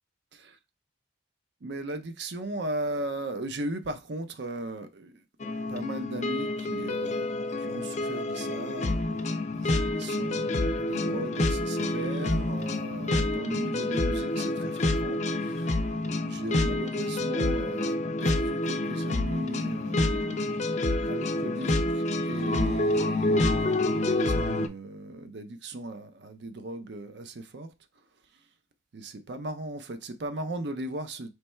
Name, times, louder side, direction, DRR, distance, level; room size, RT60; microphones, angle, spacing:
voice 1, 1.6-5.2 5.7-7.3 7.6-15.7 16.2-27.7 28.9-31.3, right 1 dB, 55° right, 0.5 m, -37 dB
sound 1, 5.4-24.7, left 2 dB, 35° left, 0.4 m, -28 dB
3.3 x 3.1 x 4.3 m
head